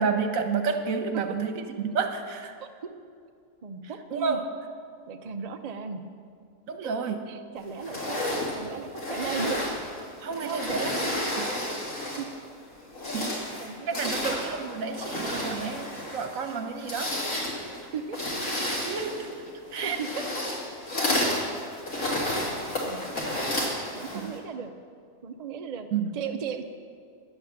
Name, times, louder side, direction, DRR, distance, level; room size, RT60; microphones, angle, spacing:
voice 1, 0.0-2.5 4.1-4.5 6.7-7.3 10.2-11.5 13.1-13.5 13.9-17.1 18.8-19.3 19.7-20.0 21.9-22.2 24.1-24.3 25.9-26.1, right 5 dB, 75° right, 6 dB, 1.3 m, -30 dB
voice 2, 3.6-4.4 5.1-6.0 6.8-7.0 7.3-9.6 10.4-10.8 12.2-12.3 13.1-14.4 17.9-18.2 19.8-20.2 22.8-23.2 23.6-24.7 25.2-25.9 26.1-26.6, right 6 dB, 40° right, 6 dB, 0.6 m, -36 dB
sound 1, 7.8-12.4 12.8-24.4, left 1 dB, 90° left, 2.6 m, -31 dB
10.5 x 8.8 x 7.2 m, 2.3 s
omnidirectional pair, 1.4 m